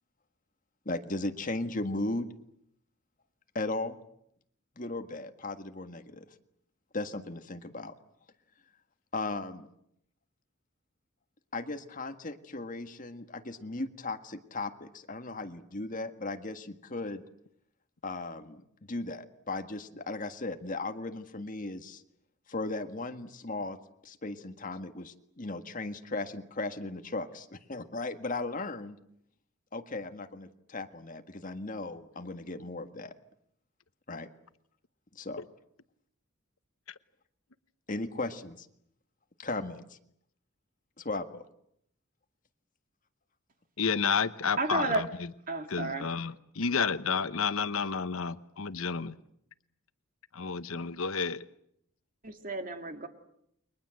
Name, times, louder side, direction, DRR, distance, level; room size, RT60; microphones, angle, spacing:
voice 1, 0.8-2.3 3.5-4.0 4.8-6.3 6.9-7.9 9.1-9.7 11.5-17.2 18.0-18.6 18.9-22.0 22.5-23.8 24.0-29.0 29.7-33.1 34.1-34.3 35.1-35.4 37.9-38.7 39.4-40.0 41.0-41.4, left 2 dB, 40° left, 7 dB, 1.7 m, -36 dB
voice 2, 43.8-45.3 45.7-49.1 50.3-51.4, left 5 dB, 85° left, 13 dB, 1.0 m, -31 dB
voice 3, 44.6-45.0 45.5-46.1 52.2-53.1, right 3 dB, 40° right, 6 dB, 2.4 m, -32 dB
29.5 x 23.0 x 7.8 m, 0.74 s
head